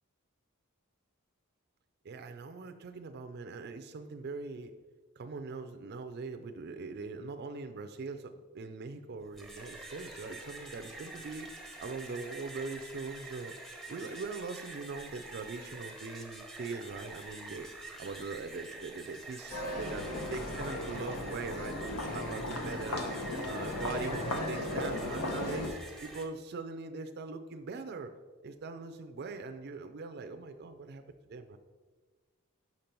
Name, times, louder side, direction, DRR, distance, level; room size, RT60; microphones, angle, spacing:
voice 1, 2.0-4.7 5.2-11.5 11.8-13.5 13.9-17.7 18.0-23.1 23.5-28.1 28.4-31.0 31.3-31.6, right 4 dB, 45° right, 6 dB, 0.4 m, -41 dB
sound 1, 9.2-26.2, right 2 dB, ahead, 0.6 m, -47 dB
sound 2, 19.5-25.7, left 1 dB, 85° left, 0.8 m, -36 dB
5.7 x 5.3 x 4.4 m, 1.3 s
head